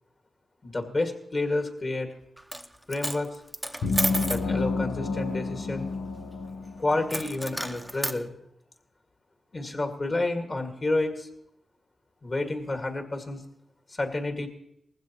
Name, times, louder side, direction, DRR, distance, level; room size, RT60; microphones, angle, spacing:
voice 1, 0.6-2.1 2.9-3.4 4.2-5.9 6.8-8.3 9.5-11.3 12.2-13.4 14.0-14.5, left 2 dB, 40° left, 4 dB, 2.0 m, -29 dB
Coin (dropping), 2.4-2.7 2.9-4.5 7.1-8.2, right 1 dB, 5° right, 0.7 m, -31 dB
sound 1, 3.8-7.4, left 3 dB, 90° left, 0.8 m, -30 dB
19.5 x 15.0 x 3.0 m, 0.76 s
cardioid pair, 70°, 0 cm